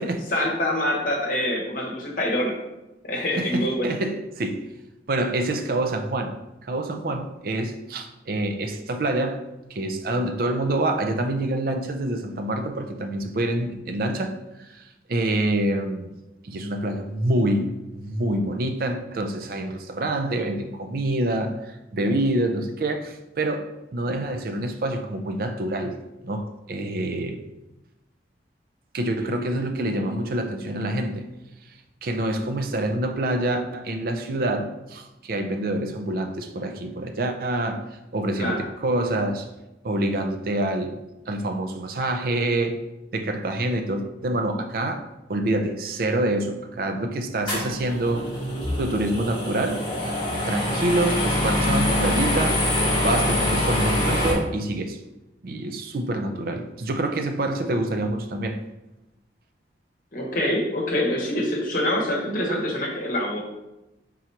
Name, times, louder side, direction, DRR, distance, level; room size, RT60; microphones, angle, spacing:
voice 1, 0.3-2.5 3.0-3.9 38.4-38.6 60.1-63.4, left 1 dB, 50° left, 1.0 m, -25 dB
voice 2, 3.4-4.7 5.1-9.4 9.7-14.8 15.1-16.1 16.4-23.7 23.9-26.0 26.2-27.4 28.9-31.3 32.0-37.8 38.1-39.5 39.8-41.0 41.3-42.8 43.1-48.3 48.8-49.8 50.5-52.6 53.0-55.0 55.4-58.6, right 1 dB, 55° right, 0.4 m, -26 dB
sound 1, 47.5-54.3, left 1 dB, 25° left, 1.2 m, -24 dB
3.7 x 2.9 x 4.4 m
head